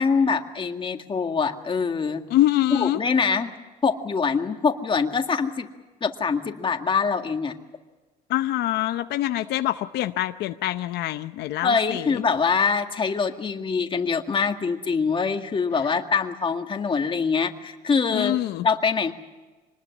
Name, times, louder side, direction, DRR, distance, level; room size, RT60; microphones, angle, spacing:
voice 1, 0.0-2.2 2.7-3.5 3.8-5.7 6.0-7.6 11.6-18.4 18.6-19.1, left 5 dB, 30° left, 5 dB, 2.0 m, -24 dB
voice 2, 2.3-3.0 8.3-12.2 18.1-18.7, left 14 dB, 80° left, 9 dB, 0.8 m, -25 dB
25.5 x 20.0 x 7.3 m, 1.2 s
cardioid pair, 110°, 17 cm